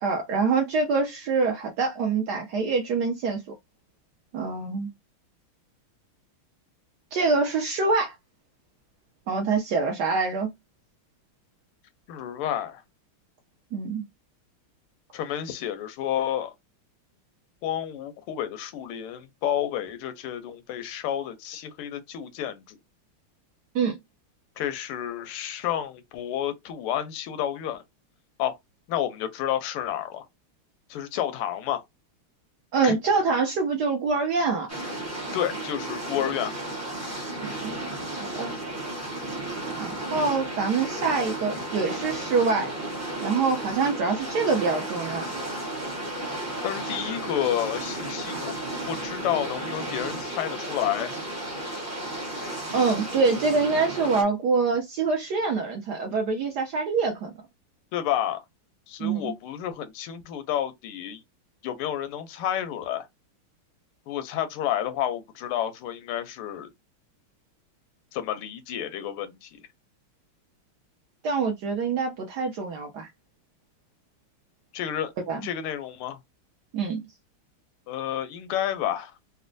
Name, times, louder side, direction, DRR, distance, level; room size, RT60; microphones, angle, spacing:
voice 1, 0.0-3.4 4.3-4.9 7.1-8.1 9.3-10.5 13.7-14.0 23.7-24.0 32.7-34.7 37.6-37.8 38.4-38.5 39.7-42.7 43.2-45.3 52.7-57.3 59.0-59.3 71.2-73.1 75.3-75.4 76.7-77.0, right 4 dB, 75° right, 0.9 m, -25 dB
voice 2, 12.1-12.8 15.1-16.5 17.6-22.8 24.6-27.8 28.4-28.6 28.9-30.3 30.9-31.8 32.8-33.0 35.3-36.5 46.6-48.5 48.9-51.1 57.9-58.4 58.9-61.2 61.6-63.1 64.1-66.7 68.1-69.6 74.7-75.1 75.4-76.2 77.9-79.1, left 11 dB, 90° left, 1.5 m, -30 dB
sound 1, 34.7-54.2, right 1 dB, 20° right, 0.4 m, -33 dB
4.1 x 2.1 x 2.5 m
omnidirectional pair, 2.3 m